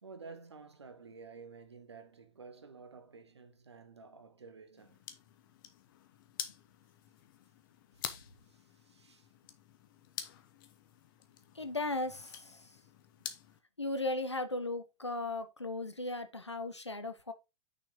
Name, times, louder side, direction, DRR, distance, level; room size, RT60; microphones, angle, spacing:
voice 1, 0.0-5.0 8.5-9.3, right 4 dB, 75° right, 1.5 m, -52 dB
sound 1, 4.8-13.6, left 10 dB, 50° left, 1.1 m, -48 dB
voice 2, 11.5-12.7 13.8-17.3, left 2 dB, 85° left, 1.0 m, -36 dB
6.3 x 6.0 x 3.7 m
figure-of-eight pair, 100°, 14 cm